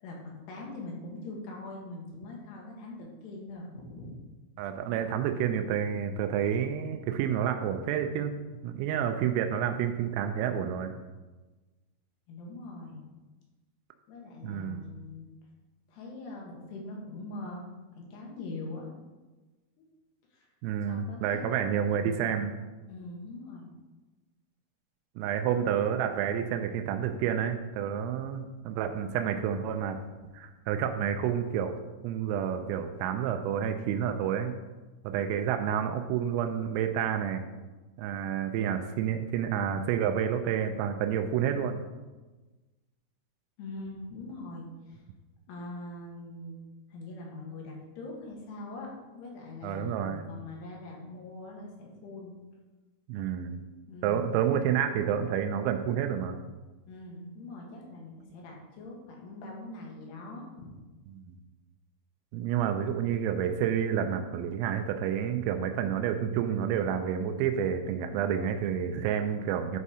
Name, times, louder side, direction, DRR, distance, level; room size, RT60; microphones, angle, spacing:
voice 1, 0.0-4.2 12.3-13.0 14.1-15.3 15.9-17.7 17.9-18.9 20.3-20.5 20.9-21.6 22.0-22.2 22.9-23.7 43.6-45.0 45.5-46.6 46.9-52.3 53.9-54.3 56.9-60.7, left 2 dB, 65° left, -1 dB, 3.1 m, -42 dB
voice 2, 4.6-8.3 8.6-10.9 14.4-14.8 20.6-22.5 25.2-30.0 30.3-31.7 32.0-34.6 35.0-37.4 38.0-41.8 49.6-50.3 53.1-53.6 54.0-56.4 61.1-61.4 62.3-69.8, right 8 dB, 90° right, 6 dB, 3.3 m, -29 dB
12.0 x 4.2 x 4.8 m, 1.2 s
omnidirectional pair, 5.9 m